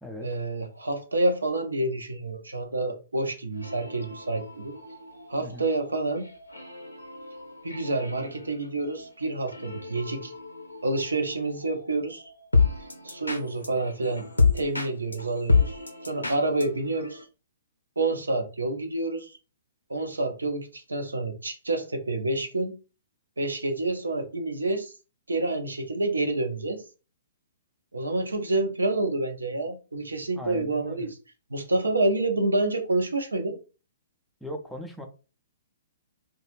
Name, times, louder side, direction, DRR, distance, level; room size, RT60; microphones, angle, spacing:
voice 1, 0.2-4.7 5.3-6.3 7.6-10.3 10.8-12.3 13.0-14.2 14.5-17.2 18.0-19.4 19.9-22.7 23.4-24.9 25.3-26.8 27.9-31.1 31.5-33.6, right 2 dB, 75° right, 4 dB, 0.6 m, -28 dB
sound 1, 3.5-17.3, left 4 dB, 80° left, 0.5 m, -30 dB
voice 2, 30.4-31.1 34.4-35.1, equal, ahead, 2 dB, 0.4 m, -39 dB
2.3 x 2.2 x 3.0 m, 0.32 s
figure-of-eight pair, 115°, 0 cm